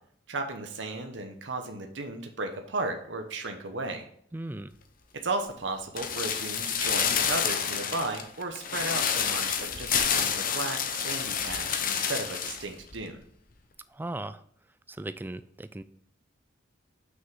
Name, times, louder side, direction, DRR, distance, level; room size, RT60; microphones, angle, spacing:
voice 1, 0.3-4.0 5.2-13.2, right 2 dB, 70° right, 5 dB, 0.9 m, -35 dB
voice 2, 4.3-4.7 14.0-14.4 15.0-15.8, right 1 dB, 10° right, 13 dB, 0.3 m, -37 dB
sound 1, 6.0-12.6 12.9-13.0, left 7 dB, 45° left, 0.8 m, -29 dB
6.2 x 5.8 x 5.5 m, 0.64 s
head